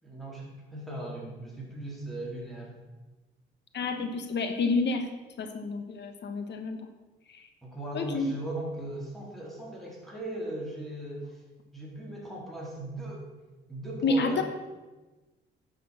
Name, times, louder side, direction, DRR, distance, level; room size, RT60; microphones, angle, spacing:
voice 1, 0.0-2.8 7.6-11.4 11.7-13.3 13.7-14.4, right 1 dB, ahead, -4 dB, 4.0 m, -38 dB
voice 2, 3.7-5.1 5.4-6.9 7.3-7.5 7.9-8.3 14.0-14.4, left 3 dB, 60° left, 7 dB, 1.2 m, -29 dB
10.5 x 6.4 x 6.4 m, 1.2 s
cardioid pair, 90°, 20 cm